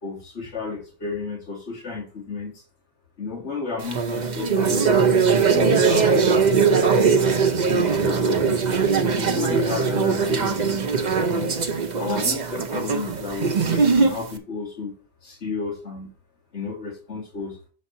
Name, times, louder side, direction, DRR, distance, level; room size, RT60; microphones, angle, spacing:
voice 1, 0.0-2.6 3.2-4.9 5.3-7.2 7.7-8.4 9.0-10.9 11.3-11.5 12.0-14.9 15.2-16.1 16.5-17.6, left 4 dB, 75° left, -2 dB, 2.4 m, -32 dB
sound 1, 3.8-14.3, right 5 dB, 45° right, 0.9 m, -21 dB
6.9 x 4.3 x 5.6 m, 0.36 s
omnidirectional pair, 1.1 m